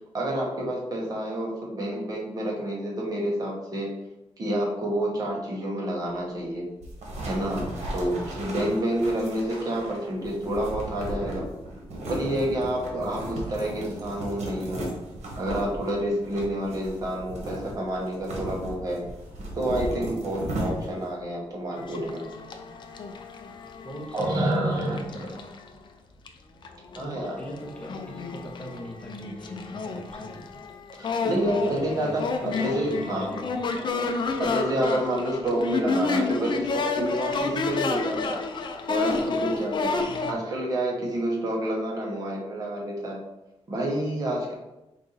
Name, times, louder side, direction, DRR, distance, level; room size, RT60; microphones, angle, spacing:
voice 1, 0.1-3.9 4.4-6.7 7.3-11.5 12.1-14.9 15.4-19.0 19.5-22.2 24.1-25.3 26.9-27.4 31.0-33.3 33.8-38.3 38.9-39.9 40.2-43.2 43.7-44.5, right 1 dB, 35° right, -2 dB, 1.1 m, -29 dB
sound 1, 6.8-21.1, right 1 dB, 80° right, 1.2 m, -36 dB
sound 2, 21.8-25.7 26.3-26.4 26.6-40.3, left 3 dB, 45° left, 0.4 m, -30 dB
voice 2, 23.8-25.4 27.0-30.5 31.5-32.1 32.4-33.6 35.7-36.0 40.1-40.4, equal, 10° left, -2 dB, 0.9 m, -41 dB
4.6 x 2.7 x 3.9 m, 0.97 s
wide cardioid pair, 155°, 11 cm